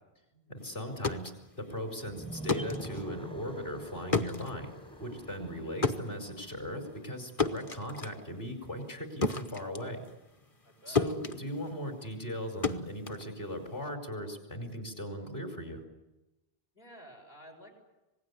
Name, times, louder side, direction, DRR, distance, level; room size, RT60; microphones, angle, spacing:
voice 1, 0.5-1.3 1.6-4.7 5.0-10.0 10.9-15.8, equal, 60° left, 4 dB, 5.1 m, -38 dB
sound 1, 0.8-10.7 11.0-13.9, left 4 dB, 35° left, 1.1 m, -34 dB
sound 2, 2.1-7.1, right 1 dB, 5° left, 0.7 m, -46 dB
voice 2, 10.6-11.1 16.7-17.7, equal, 75° left, 3 dB, 7.2 m, -52 dB
26.0 x 19.0 x 9.8 m, 1.0 s
omnidirectional pair, 1.0 m